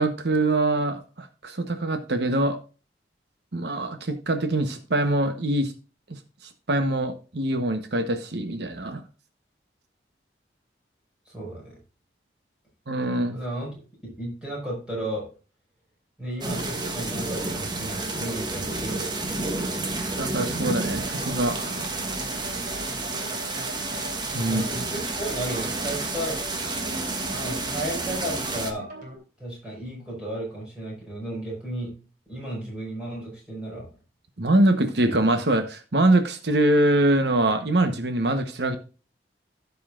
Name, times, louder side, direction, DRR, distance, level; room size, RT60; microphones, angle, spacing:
voice 1, 0.0-2.6 3.5-5.7 6.1-9.0 12.9-13.4 20.2-21.7 24.3-24.6 34.4-38.8, right 1 dB, 75° right, 7 dB, 1.1 m, -24 dB
voice 2, 11.3-11.8 13.3-15.3 16.2-19.1 24.5-26.4 27.3-28.9 29.4-31.9 32.3-33.9, right 1 dB, 5° right, -5 dB, 5.5 m, -34 dB
sound 1, 16.4-28.7, right 2 dB, 25° right, 1.2 m, -30 dB
sound 2, 21.0-29.2, right 1 dB, 50° right, 3.4 m, -41 dB
16.5 x 5.6 x 2.5 m, 0.34 s
head